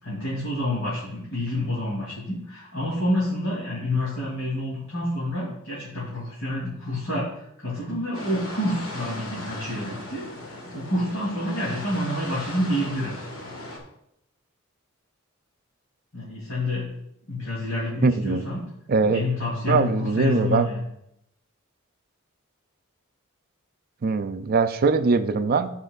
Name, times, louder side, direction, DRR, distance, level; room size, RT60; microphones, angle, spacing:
voice 1, 0.0-13.1 16.1-16.9 17.3-18.6 19.0-20.8, left 1 dB, 65° left, -7 dB, 2.9 m, -28 dB
sound 1, 8.1-13.8, left 2 dB, 80° left, 1.7 m, -38 dB
voice 2, 18.0-18.4 18.9-19.2 19.7-20.7 24.0-25.7, right 4 dB, 45° right, 11 dB, 0.4 m, -21 dB
13.0 x 5.5 x 2.4 m, 0.78 s
head